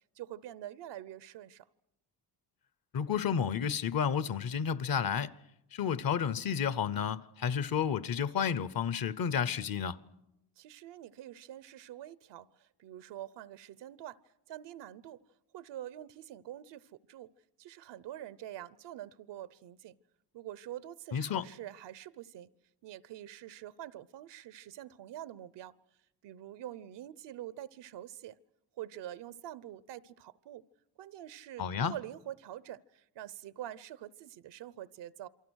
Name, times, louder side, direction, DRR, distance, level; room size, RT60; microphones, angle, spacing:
voice 1, 0.2-1.7 10.6-14.2 14.5-15.2 15.5-17.3 17.6-20.0 20.3-22.5 22.8-25.7 26.2-28.4 28.8-30.7 31.0-35.3, right 12 dB, 90° right, 0.8 m, -46 dB
voice 2, 2.9-5.3 5.7-10.0 21.1-21.4 31.6-31.9, left 7 dB, 55° left, 0.9 m, -31 dB
28.0 x 23.5 x 6.3 m
cardioid pair, 105°, 41 cm